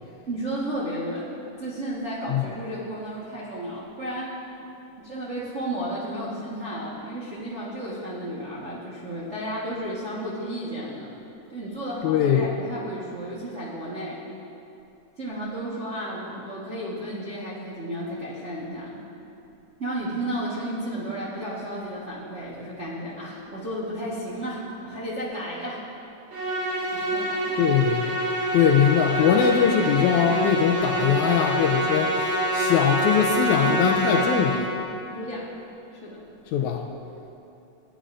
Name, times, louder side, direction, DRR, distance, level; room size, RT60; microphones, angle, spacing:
voice 1, 0.3-1.3 1.6-4.4 5.0-11.1 11.5-14.2 15.2-19.0 19.8-25.8 26.9-27.6 28.9-29.3 35.1-35.5 36.0-36.2, right 1 dB, 55° right, -9 dB, 0.7 m, -33 dB
voice 2, 12.0-12.5 27.6-28.1 28.5-34.7 36.5-36.9, left 8 dB, 80° left, 3 dB, 1.8 m, -21 dB
Musical instrument, 26.3-34.8, right 1 dB, 75° right, 2.9 m, -26 dB
16.0 x 10.0 x 2.5 m, 2.8 s
omnidirectional pair, 3.7 m